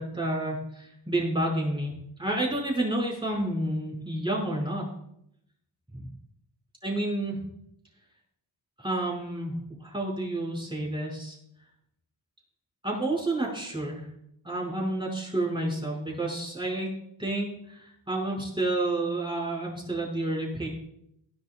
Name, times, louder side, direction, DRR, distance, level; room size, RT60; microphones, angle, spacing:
voice 1, 0.0-4.8 5.9-6.0 6.8-7.4 8.8-11.4 12.8-14.0 14.4-16.9 17.2-20.7, right 1 dB, 10° right, -2 dB, 5.1 m, -30 dB
18.0 x 11.0 x 2.3 m, 0.75 s
wide cardioid pair, 85°, 46 cm